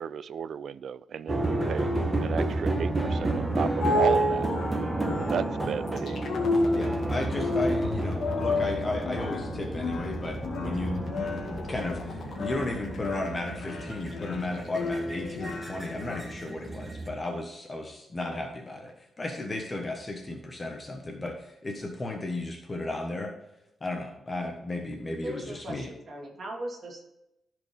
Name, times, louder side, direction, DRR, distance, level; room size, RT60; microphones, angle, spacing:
voice 1, 0.0-1.9 2.2-4.5 5.3-6.2, right 7 dB, 65° right, 18 dB, 0.3 m, -33 dB
sound 1, 1.3-17.1, right 2 dB, 15° right, 1.3 m, -32 dB
sound 2, 3.4-16.2, left 1 dB, 75° left, 1.9 m, -31 dB
sound 3, 5.9-15.9, left 4 dB, 60° left, 1.7 m, -41 dB
voice 2, 6.7-11.0 11.5-23.3 23.8-25.9, left 2 dB, 25° left, 2 dB, 1.3 m, -34 dB
voice 3, 25.2-27.0, right 1 dB, 45° right, -1 dB, 2.7 m, -38 dB
14.5 x 5.0 x 3.5 m, 0.83 s
wide cardioid pair, 140°, 0 cm